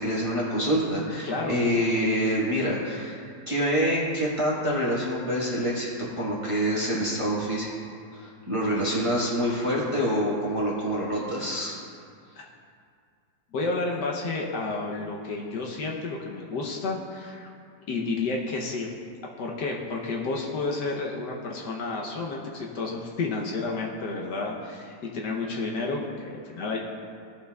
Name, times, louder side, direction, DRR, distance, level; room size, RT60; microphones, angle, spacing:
voice 1, 0.0-5.9 6.2-11.8, equal, 20° right, -6 dB, 1.2 m, -26 dB
voice 2, 1.2-1.5 12.4-12.5 13.5-17.4 17.9-18.9 19.4-26.8, left 3 dB, 70° left, -1 dB, 1.3 m, -31 dB
17.0 x 5.6 x 2.3 m, 2.2 s
omnidirectional pair, 2.0 m